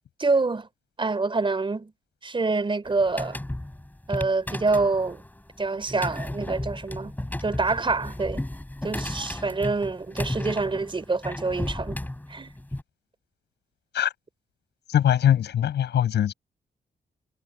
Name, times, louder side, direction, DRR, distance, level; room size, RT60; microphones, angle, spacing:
voice 1, 0.2-0.7 1.0-1.9 2.2-3.4 4.1-5.2 5.6-7.1 7.4-8.4 8.8-12.0 12.3-12.5, right 3 dB, 30° right, 3.7 m, -26 dB
sound 1, 2.9-12.8, left 1 dB, 10° left, 7.6 m, -34 dB
voice 2, 14.9-16.3, left 10 dB, 90° left, 7.8 m, -22 dB
cardioid pair, 100°, 17 cm